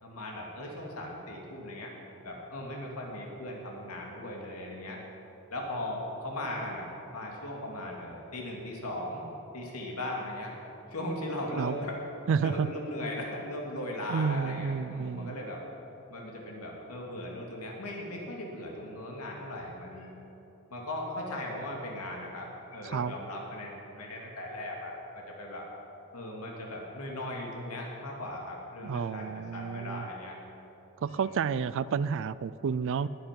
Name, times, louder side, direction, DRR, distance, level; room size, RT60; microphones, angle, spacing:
voice 1, 0.0-1.9 2.2-5.0 5.5-9.3 9.5-10.5 10.9-12.0 12.4-15.6 16.1-20.1 20.7-25.7 26.1-30.4 31.2-31.3, left 1 dB, 80° left, -1 dB, 2.5 m, -38 dB
voice 2, 12.3-12.7 14.1-15.4 22.8-23.1 28.8-30.1 31.0-33.1, right 6 dB, 60° right, 17 dB, 0.3 m, -30 dB
20.0 x 9.1 x 5.3 m, 3.0 s
head